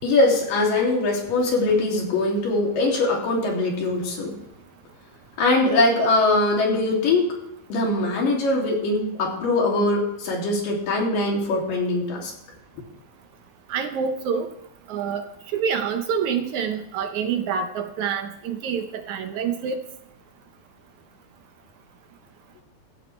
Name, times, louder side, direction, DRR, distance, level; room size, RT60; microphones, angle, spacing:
voice 1, 0.0-4.3 5.4-7.4 7.7-12.3, left 2 dB, 80° left, -1 dB, 4.5 m, -22 dB
voice 2, 13.7-14.5 14.9-15.2 15.5-19.8, right 6 dB, 70° right, 7 dB, 2.1 m, -26 dB
15.5 x 15.0 x 3.3 m, 0.82 s
omnidirectional pair, 3.9 m